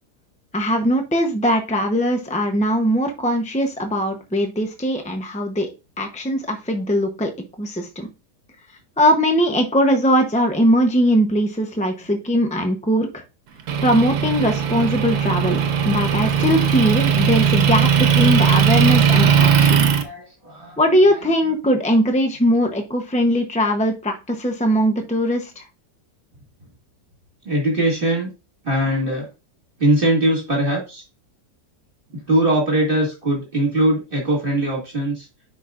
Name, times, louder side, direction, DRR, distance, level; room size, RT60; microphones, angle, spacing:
voice 1, 0.5-5.7 6.0-7.3 7.6-8.1 9.0-13.2 13.8-19.9 20.8-25.6, equal, 10° left, 5 dB, 0.4 m, -20 dB
Motor vehicle (road) / Engine, 13.7-20.0, right 7 dB, 75° right, 1.5 m, -18 dB
voice 2, 19.7-20.8 27.4-28.3 28.6-29.3 29.8-31.0 32.3-35.3, right 1 dB, 35° right, -2 dB, 2.2 m, -21 dB
10.0 x 5.0 x 2.5 m, 0.28 s
omnidirectional pair, 1.7 m